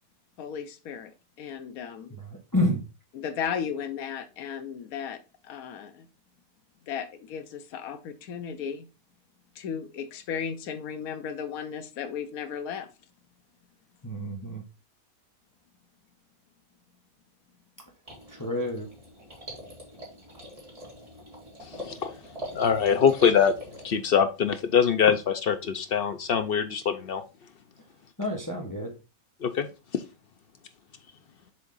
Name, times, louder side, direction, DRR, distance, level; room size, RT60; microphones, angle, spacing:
voice 1, 0.4-1.1 1.4-2.2 3.1-5.2 5.4-6.1 6.9-8.9 9.5-12.9, left 7 dB, 75° left, 7 dB, 1.2 m, -35 dB
voice 2, 2.2-2.8 14.0-14.6 18.3-18.9 28.2-28.9, left 1 dB, 15° left, 0 dB, 1.2 m, -29 dB
sound 1, 18.1-23.9, equal, 25° right, 2.4 m, -44 dB
voice 3, 21.6-22.1 22.5-23.5 23.8-27.2 29.4-29.7 29.9-30.0, left 7 dB, 60° left, 9 dB, 0.6 m, -23 dB
7.0 x 3.6 x 3.9 m, 0.30 s
omnidirectional pair, 1.5 m